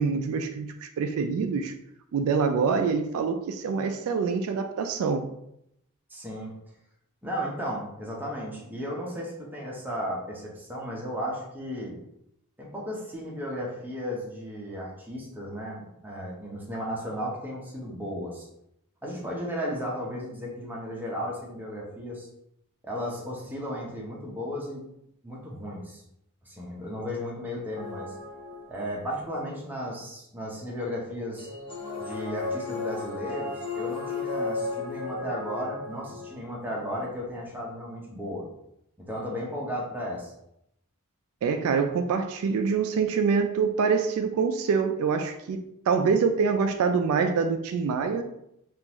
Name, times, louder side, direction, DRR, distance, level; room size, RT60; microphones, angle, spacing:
voice 1, 0.0-1.7 2.1-5.2 41.4-45.6 45.9-48.3, right 5 dB, 65° right, 7 dB, 0.3 m, -25 dB
voice 2, 6.1-6.5 7.2-12.0 12.6-18.5 19.0-22.3 22.8-24.9 25.2-26.0 26.5-28.1 28.7-31.5 32.0-38.5 39.0-40.3, equal, 10° right, -4 dB, 0.8 m, -35 dB
sound 1, 27.7-29.1 31.4-36.6, left 3 dB, 25° left, 0.7 m, -34 dB
3.7 x 2.5 x 2.9 m, 0.79 s
head